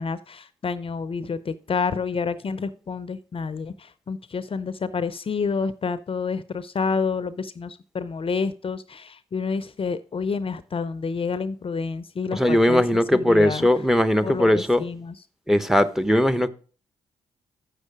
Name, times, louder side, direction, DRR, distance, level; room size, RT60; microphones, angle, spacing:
voice 1, 0.0-13.7 14.2-15.1, left 5 dB, 40° left, 0.6 m, -29 dB
voice 2, 12.3-14.8 15.5-16.5, left 1 dB, 5° right, 0.8 m, -19 dB
7.7 x 6.4 x 4.8 m
hypercardioid pair, 45°, 14 cm